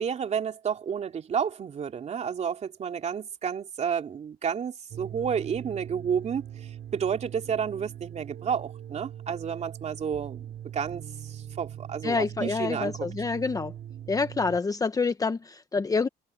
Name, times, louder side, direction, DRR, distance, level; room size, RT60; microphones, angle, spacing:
voice 1, 0.0-10.5 10.7-13.1, right 7 dB, 40° right, 3.0 m, -31 dB
sound 1, 4.9-14.6, right 10 dB, 60° right, 4.7 m, -41 dB
voice 2, 12.0-13.7 14.1-16.1, left 4 dB, 20° left, 0.9 m, -27 dB
open air
cardioid pair, 110°, 17 cm